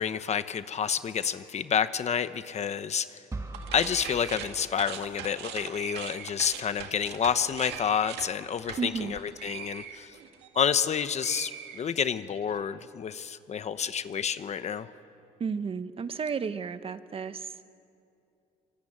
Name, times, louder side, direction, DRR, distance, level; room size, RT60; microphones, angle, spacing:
voice 1, 0.0-3.2 3.7-10.2 10.5-14.9, left 7 dB, 40° left, 12 dB, 0.9 m, -29 dB
sound 1, 3.3-5.3, right 2 dB, 15° right, 1.6 m, -42 dB
sound 2, 3.5-10.9 11.2-12.4, right 9 dB, 85° right, 2.0 m, -41 dB
voice 2, 8.8-9.1 15.4-17.5, right 5 dB, 35° right, 12 dB, 1.1 m, -32 dB
25.5 x 23.5 x 8.9 m, 2.6 s
cardioid pair, 110°, 17 cm